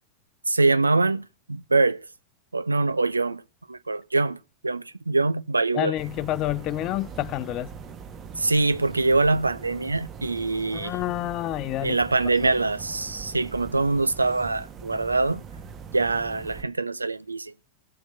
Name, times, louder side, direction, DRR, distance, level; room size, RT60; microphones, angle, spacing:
voice 1, 0.5-1.2 1.5-2.0 2.5-3.4 3.7-4.4 4.6-5.9 8.4-10.9 11.8-15.4 15.9-17.5, right 3 dB, 80° right, 0.7 m, -24 dB
voice 2, 5.7-7.7 10.7-12.0 12.2-12.5, left 15 dB, 35° left, 0.7 m, -29 dB
sound 1, 6.0-16.6, right 6 dB, 30° right, 1.9 m, -41 dB
17.5 x 7.3 x 7.7 m
figure-of-eight pair, 90°, 0 cm